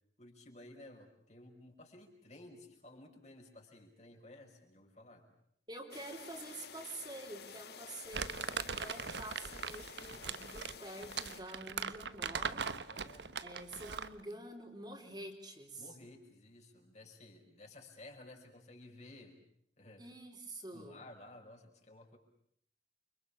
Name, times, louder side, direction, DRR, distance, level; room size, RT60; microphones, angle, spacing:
voice 1, 0.2-5.3 12.9-13.3 15.8-19.4 19.8-20.1 20.7-22.2, left 2 dB, 40° left, 2 dB, 5.6 m, -55 dB
voice 2, 5.7-12.7 13.4-15.9 20.0-21.0, right 1 dB, 25° right, 2 dB, 4.0 m, -48 dB
sound 1, 5.9-11.4, left 6 dB, 65° left, 1.6 m, -51 dB
Crumpling crinkling, 8.1-14.2, right 6 dB, 80° right, 1.3 m, -40 dB
30.0 x 25.5 x 7.2 m, 0.69 s
head